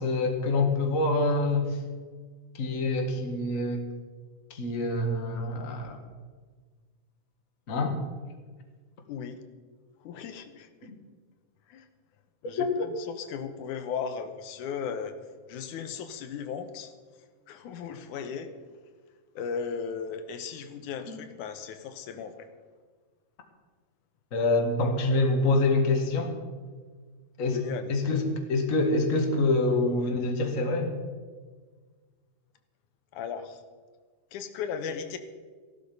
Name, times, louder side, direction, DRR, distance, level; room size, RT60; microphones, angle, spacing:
voice 1, 0.0-1.8 2.5-3.8 4.5-6.0 7.7-8.0 10.9-11.0 12.6-12.7 24.3-26.3 27.4-27.6 27.9-30.9, left 2 dB, 30° left, 2 dB, 1.7 m, -26 dB
voice 2, 9.1-9.4 10.0-10.7 11.7-11.9 12.4-15.2 15.5-16.9 17.5-18.5 19.4-22.5 27.4-28.1 33.1-33.6 34.3-35.2, left 6 dB, 85° left, 9 dB, 2.4 m, -36 dB
15.5 x 12.0 x 5.4 m, 1.5 s
omnidirectional pair, 3.4 m